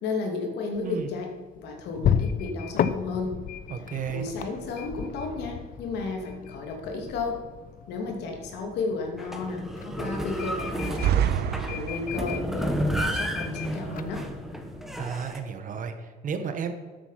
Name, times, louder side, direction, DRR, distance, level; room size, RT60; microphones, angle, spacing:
voice 1, 0.0-3.4 4.1-7.4 7.9-11.3 11.7-14.3, left 3 dB, 85° left, 3 dB, 2.8 m, -33 dB
sound 1, 0.7-15.1, left 8 dB, 55° left, 0.8 m, -35 dB
voice 2, 3.7-4.3 15.0-16.7, right 7 dB, 50° right, 8 dB, 1.6 m, -33 dB
sound 2, 9.2-15.4, equal, ahead, 1.5 m, -32 dB
sound 3, 10.8-12.4, right 9 dB, 70° right, 0.9 m, -27 dB
12.5 x 8.4 x 5.9 m, 1.3 s
cardioid pair, 110°, 17 cm